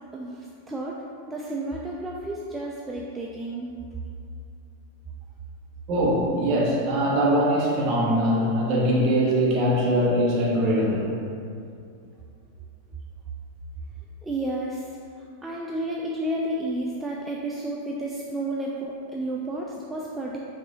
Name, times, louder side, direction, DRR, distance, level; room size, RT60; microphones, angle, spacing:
voice 1, 0.1-3.7 14.2-20.4, right 1 dB, 10° right, -3 dB, 0.3 m, -32 dB
voice 2, 5.9-11.1 18.5-18.6, equal, 40° right, -5 dB, 1.0 m, -22 dB
5.2 x 2.7 x 2.8 m, 2.4 s
figure-of-eight pair, 90°, 0 cm